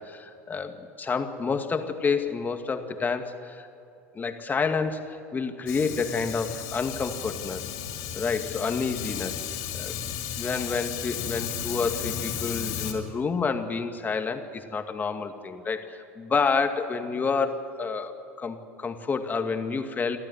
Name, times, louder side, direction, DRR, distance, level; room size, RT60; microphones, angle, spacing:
voice 1, 0.1-3.6 4.1-7.7 8.1-9.4 9.7-10.0 10.4-20.2, left 5 dB, 25° left, 6 dB, 2.1 m, -29 dB
Fire, 5.7-12.9, left 9 dB, 65° left, 3.9 m, -34 dB
28.0 x 13.5 x 9.6 m, 2.6 s
hypercardioid pair, 85°, 7 cm